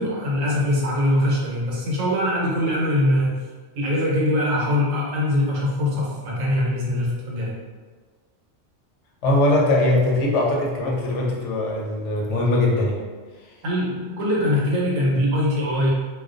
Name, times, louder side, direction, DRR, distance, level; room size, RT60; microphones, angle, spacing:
voice 1, 0.0-3.4 3.7-7.5 13.6-15.9, left 1 dB, 90° right, -4 dB, 1.1 m, -22 dB
voice 2, 9.2-13.0, left 2 dB, 75° left, -2 dB, 0.9 m, -21 dB
2.3 x 2.2 x 2.4 m, 1.4 s
omnidirectional pair, 1.3 m